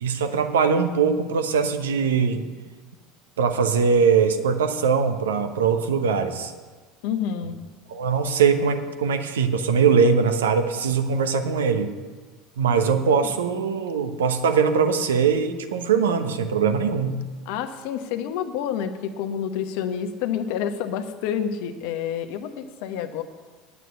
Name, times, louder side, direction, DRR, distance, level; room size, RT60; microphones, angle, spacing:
voice 1, 0.0-2.4 3.4-6.5 7.9-11.9 12.6-17.2, right 6 dB, 75° right, 7 dB, 1.0 m, -21 dB
voice 2, 7.0-7.6 13.2-13.4 17.4-23.2, left 8 dB, 60° left, 7 dB, 1.0 m, -28 dB
9.3 x 8.3 x 9.1 m, 1.4 s
figure-of-eight pair, 70°, 0 cm